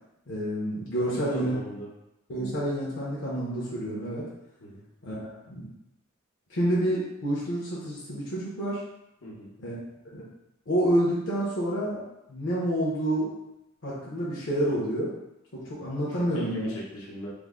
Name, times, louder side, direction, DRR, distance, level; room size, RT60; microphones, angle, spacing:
voice 1, 0.3-1.5 2.3-4.3 5.0-5.7 6.5-8.8 9.6-9.7 10.1-10.2 10.7-12.0 12.3-13.3 13.8-15.1 15.5-16.7, right 1 dB, 60° left, -7 dB, 0.8 m, -28 dB
voice 2, 1.1-1.9 4.6-4.8 9.2-9.5 16.2-17.3, right 1 dB, 80° left, -5 dB, 1.0 m, -38 dB
3.5 x 2.1 x 3.6 m, 0.88 s
head